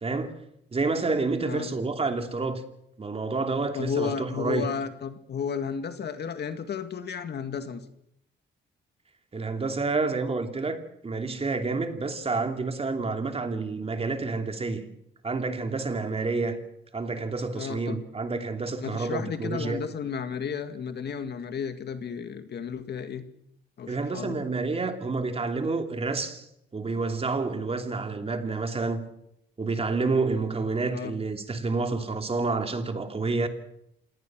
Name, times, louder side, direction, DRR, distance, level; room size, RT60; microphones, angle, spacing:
voice 1, 0.0-0.3 0.7-2.6 3.0-4.7 9.3-14.8 15.2-16.6 16.9-19.8 23.9-26.5 26.7-29.0 29.6-33.5, right 3 dB, 30° right, 2.9 m, -29 dB
voice 2, 1.4-1.8 3.7-7.8 17.6-18.0 18.8-23.2 23.8-24.4 30.9-31.2, left 6 dB, 55° left, 2.0 m, -33 dB
27.0 x 18.0 x 6.2 m
cardioid pair, 90°, 20 cm